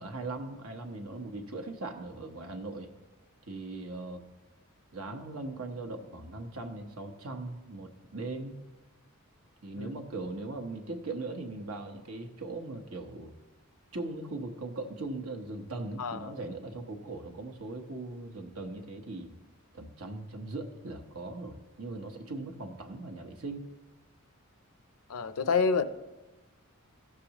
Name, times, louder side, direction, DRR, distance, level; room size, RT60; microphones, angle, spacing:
voice 1, 0.0-2.9 3.5-4.2 4.9-8.6 9.6-13.3 13.9-19.3 19.7-23.7, right 2 dB, 70° right, 4 dB, 1.1 m, -39 dB
voice 2, 9.8-10.1 16.0-16.3 25.1-25.8, left 5 dB, 75° left, 12 dB, 0.5 m, -28 dB
15.5 x 6.8 x 3.0 m, 1.1 s
head